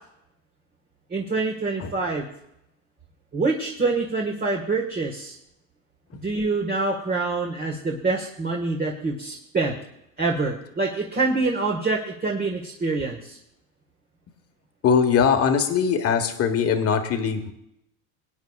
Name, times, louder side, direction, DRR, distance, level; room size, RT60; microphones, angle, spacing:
voice 1, 1.1-2.3 3.3-5.4 6.2-9.7 10.2-13.4, right 3 dB, 25° right, 0 dB, 1.6 m, -26 dB
voice 2, 14.8-17.5, left 6 dB, 35° left, 6 dB, 1.5 m, -21 dB
22.5 x 9.5 x 2.4 m, 0.80 s
supercardioid pair, 115°, 39 cm